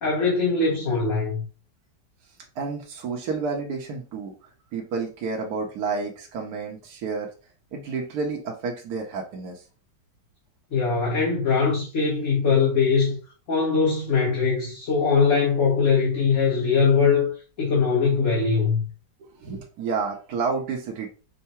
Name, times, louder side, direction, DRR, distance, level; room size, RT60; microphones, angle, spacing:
voice 1, 0.0-1.4 10.7-13.2 13.5-18.9, left 5 dB, 50° left, 1.5 m, -21 dB
voice 2, 2.5-4.3 4.7-7.3 7.7-9.6 19.2-21.1, right 4 dB, 65° right, 1.3 m, -30 dB
5.6 x 2.2 x 4.2 m
omnidirectional pair, 1.9 m